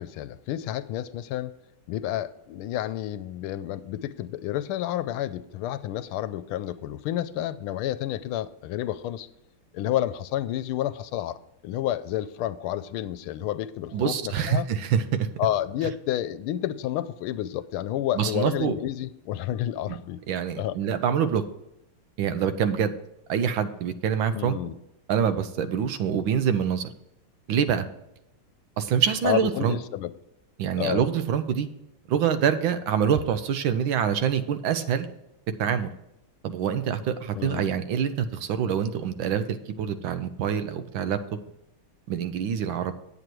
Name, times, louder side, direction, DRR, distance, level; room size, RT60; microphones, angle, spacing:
voice 1, 0.0-1.5 1.9-9.3 9.7-11.4 11.6-14.7 15.4-20.2 20.6-20.8 24.3-24.7 29.2-30.1 30.8-31.1 37.3-37.7, left 12 dB, 90° left, 14 dB, 1.5 m, -30 dB
voice 2, 13.9-15.3 18.2-18.7 20.3-21.4 22.2-22.9 23.3-24.6 25.1-26.9 27.5-27.8 28.8-29.8 30.6-31.7 32.1-35.1 35.6-35.9 36.4-41.2 42.1-42.9, right 8 dB, 75° right, 10 dB, 1.5 m, -25 dB
9.2 x 8.1 x 4.5 m, 0.86 s
omnidirectional pair, 2.3 m